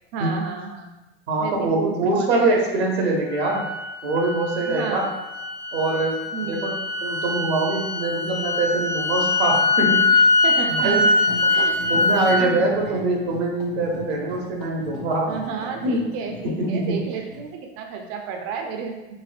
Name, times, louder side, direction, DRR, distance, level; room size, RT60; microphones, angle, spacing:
voice 1, 0.1-0.9 1.4-2.5 4.7-5.1 6.3-6.7 10.4-11.8 12.4-12.7 15.3-19.1, right 6 dB, 50° right, 3 dB, 0.5 m, -31 dB
voice 2, 1.3-3.6 4.0-5.1 5.7-6.2 6.5-10.3 10.7-11.0 11.9-15.3 15.8-16.1 16.4-17.0, right 2 dB, 85° right, -1 dB, 0.9 m, -23 dB
sound 1, 3.3-12.4, left 2 dB, 10° left, 0.3 m, -22 dB
sound 2, 11.2-17.5, left 3 dB, 85° left, 0.8 m, -38 dB
4.1 x 2.0 x 2.5 m, 1.0 s
supercardioid pair, 110°, 31 cm